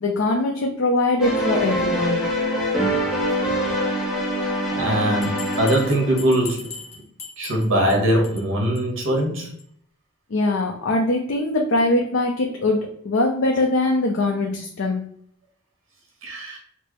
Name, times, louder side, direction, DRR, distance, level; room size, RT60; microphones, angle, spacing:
voice 1, 0.0-2.3 10.3-15.0, left 2 dB, 65° left, 1 dB, 0.5 m, -22 dB
sound 1, 1.2-6.4, equal, ahead, 0.5 m, -24 dB
voice 2, 4.7-6.7 7.4-9.5 16.2-16.6, right 1 dB, 75° right, 0 dB, 1.3 m, -21 dB
Bell, 5.2-7.9 8.2-8.4 8.7-8.8 9.2-9.3 9.6-9.7, left 5 dB, 35° left, 0.8 m, -38 dB
4.4 x 2.0 x 3.1 m, 0.64 s
head